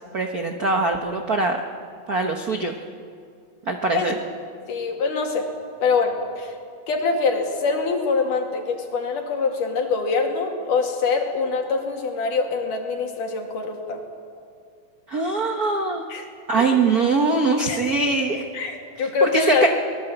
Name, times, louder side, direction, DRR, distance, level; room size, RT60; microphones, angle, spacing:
voice 1, 0.1-1.6 2.1-2.7 3.7-4.1 15.1-16.0 16.5-18.4 19.0-19.7, right 3 dB, 90° right, 4 dB, 0.8 m, -22 dB
voice 2, 4.7-5.5 5.8-6.5 6.9-14.0 16.1-16.2 17.7-17.8 18.5-19.7, left 4 dB, 75° left, 2 dB, 4.0 m, -24 dB
24.0 x 20.0 x 8.0 m, 2.3 s
omnidirectional pair, 3.7 m